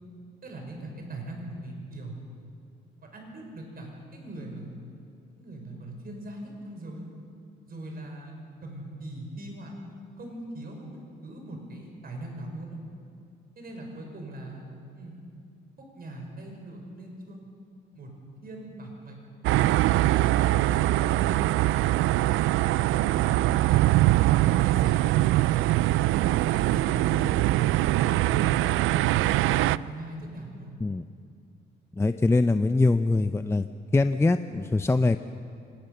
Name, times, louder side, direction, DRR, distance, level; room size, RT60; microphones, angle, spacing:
voice 1, 0.4-2.2 3.1-4.7 5.3-7.0 7.7-8.3 8.6-9.7 10.2-10.9 11.2-12.8 13.6-15.2 15.8-17.5 17.9-18.1 18.4-19.1 22.2-22.4 22.8-23.7 24.3-24.9 26.5-27.3 29.1-30.7, right 1 dB, 50° right, 2 dB, 5.8 m, -40 dB
sound 1, 19.4-29.8, right 16 dB, 85° right, 0.4 m, -22 dB
voice 2, 32.0-33.7 33.9-35.2, left 3 dB, 15° left, 10 dB, 0.6 m, -23 dB
24.5 x 19.0 x 6.8 m, 2.4 s
cardioid pair, 90°, 20 cm